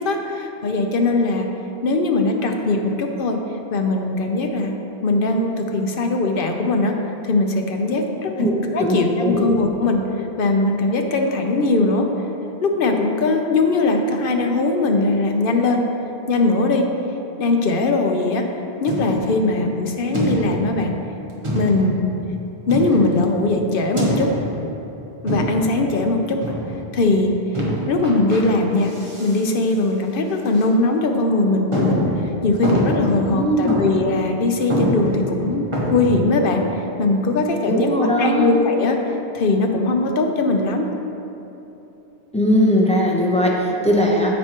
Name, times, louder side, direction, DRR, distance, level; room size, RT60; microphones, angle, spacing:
voice 1, 0.0-1.5 1.8-3.4 3.7-4.7 5.0-6.9 7.2-8.5 8.7-12.1 12.6-15.8 16.3-16.9 17.4-18.5 18.8-20.9 21.5-22.1 22.7-24.3 25.2-26.4 26.9-27.3 27.9-28.9 29.2-32.1 32.4-37.9 38.2-40.9, left 2 dB, 60° left, 3 dB, 0.9 m, -20 dB
voice 2, 8.4-9.5 33.3-33.8 37.7-38.5 42.3-44.3, equal, 5° left, -3 dB, 0.8 m, -19 dB
sound 1, 18.9-19.4 20.1-20.8 21.4-22.0 22.7-23.3 24.0-24.6 25.3-25.8 26.4-26.8 27.5-28.4 28.8-29.4 29.7-29.8 30.5-30.6 31.1-31.2 31.7-33.3 33.7-34.1 34.4-34.5 34.7-36.0, equal, 30° right, 1.2 m, -24 dB
13.5 x 4.6 x 3.0 m, 3.0 s
omnidirectional pair, 1.1 m